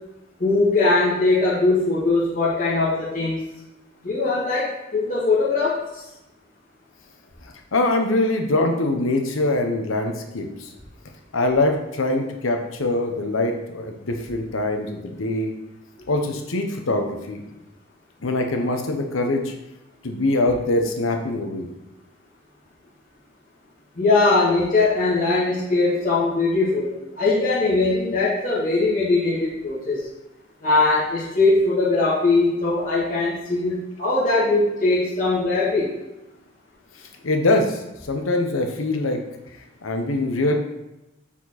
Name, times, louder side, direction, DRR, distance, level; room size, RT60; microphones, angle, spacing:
voice 1, 0.4-3.4 4.0-6.0 24.0-30.1 30.6-35.9, left 3 dB, 40° left, -11 dB, 1.8 m, -21 dB
voice 2, 7.4-10.7 11.3-15.5 16.1-17.4 18.2-19.5 20.0-21.7 37.0-37.8 38.1-39.2 39.8-40.5, left 2 dB, 85° left, 4 dB, 1.0 m, -23 dB
7.1 x 4.4 x 4.2 m, 0.94 s
head